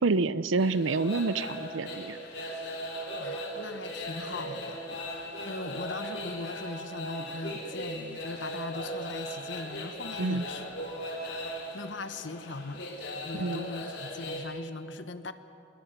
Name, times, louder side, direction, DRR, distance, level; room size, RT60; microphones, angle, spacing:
voice 1, 0.0-2.2 10.2-10.4 13.3-13.7, right 3 dB, 90° right, 16 dB, 0.6 m, -28 dB
sound 1, 0.6-14.4, equal, 60° left, 3.5 m, -38 dB
voice 2, 3.2-5.2 5.4-11.0 11.3-12.9 13.2-15.3, left 3 dB, 75° left, 11 dB, 1.2 m, -40 dB
25.5 x 21.0 x 6.9 m, 2.8 s
head